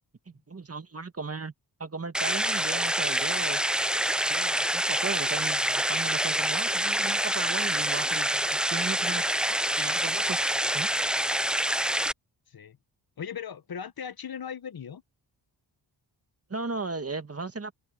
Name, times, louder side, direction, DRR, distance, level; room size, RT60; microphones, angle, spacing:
voice 1, 0.3-1.5 1.8-3.6 4.3-10.4 10.7-10.9 16.5-17.7, right 4 dB, 30° right, 1.9 m, -36 dB
sound 1, 2.1-12.1, right 1 dB, ahead, 0.4 m, -26 dB
voice 2, 13.2-15.0, left 7 dB, 55° left, 1.2 m, -38 dB
open air
cardioid pair, 60°, 44 cm